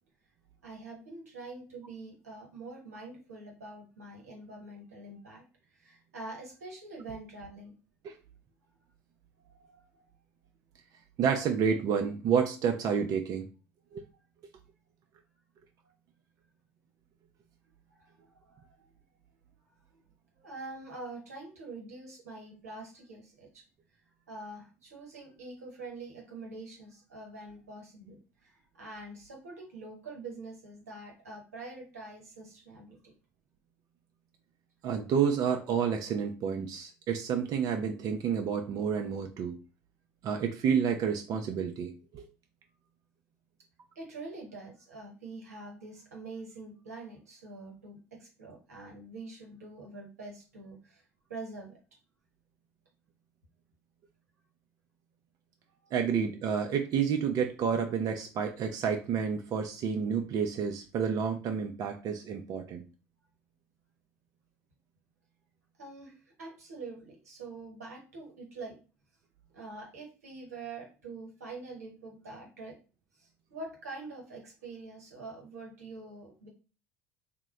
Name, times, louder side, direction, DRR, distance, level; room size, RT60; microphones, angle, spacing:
voice 1, 0.6-5.4 5.7-7.7 9.4-10.0 15.8-15.9 17.9-18.8 20.4-23.6 24.3-33.0 43.9-51.0 51.3-51.8 65.8-68.8 69.5-72.8 73.1-76.5, right 3 dB, 85° right, 0 dB, 1.0 m, -45 dB
voice 2, 11.2-13.5 13.9-14.0 34.8-39.6 40.2-42.3 55.9-62.8, right 7 dB, 50° right, 4 dB, 0.4 m, -29 dB
2.8 x 2.0 x 3.6 m, 0.34 s
hypercardioid pair, 65°, 8 cm